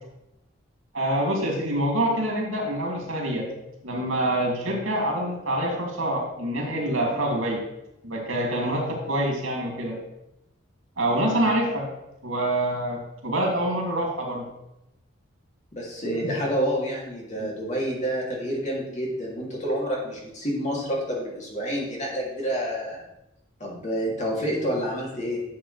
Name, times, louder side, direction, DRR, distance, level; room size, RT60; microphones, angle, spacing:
voice 1, 0.9-3.5 3.8-7.6 8.0-10.0 11.0-11.9 12.2-14.4 16.0-16.5 17.4-17.5, right 1 dB, 85° right, -1 dB, 2.8 m, -26 dB
voice 2, 15.7-23.0 23.6-25.4, equal, 35° left, -4 dB, 2.9 m, -28 dB
11.5 x 7.5 x 3.4 m, 0.89 s
head